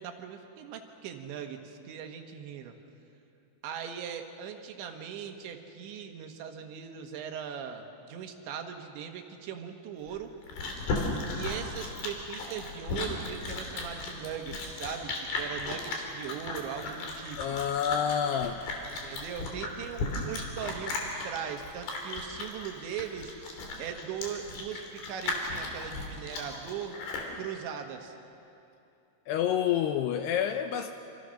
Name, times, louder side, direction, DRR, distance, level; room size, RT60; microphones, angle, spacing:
voice 1, 0.0-2.7 3.6-10.3 11.3-17.6 19.0-23.3 23.8-27.0 27.4-28.2, right 8 dB, 75° right, 4 dB, 3.6 m, -39 dB
Chewing mastication, 10.1-27.3, left 3 dB, 55° left, 4.8 m, -35 dB
voice 2, 17.4-18.7 29.3-30.9, left 9 dB, 80° left, 7 dB, 2.5 m, -28 dB
27.5 x 25.5 x 6.5 m, 2.7 s
omnidirectional pair, 5.4 m